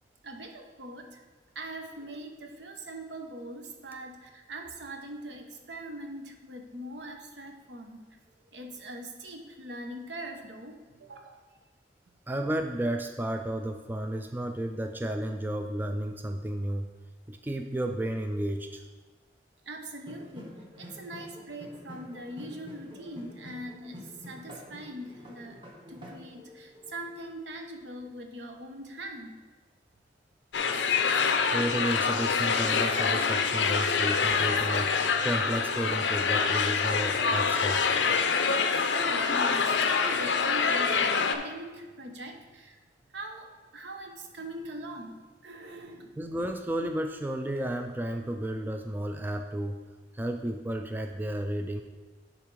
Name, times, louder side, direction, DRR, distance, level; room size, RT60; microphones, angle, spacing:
voice 1, 0.2-1.2 1.5-8.1 8.5-11.4 19.7-25.6 25.9-29.4 38.9-42.8 43.1-46.2, right 1 dB, 75° right, 4 dB, 0.9 m, -42 dB
voice 2, 12.3-16.9 17.3-18.8 31.5-37.8 46.2-49.8 50.1-51.8, right 1 dB, 10° right, 5 dB, 0.3 m, -32 dB
sound 1, 20.1-27.3, equal, 25° right, 1.2 m, -48 dB
sound 2, 30.5-41.3, left 5 dB, 85° left, 0.6 m, -26 dB
10.5 x 3.5 x 4.7 m, 1.3 s
head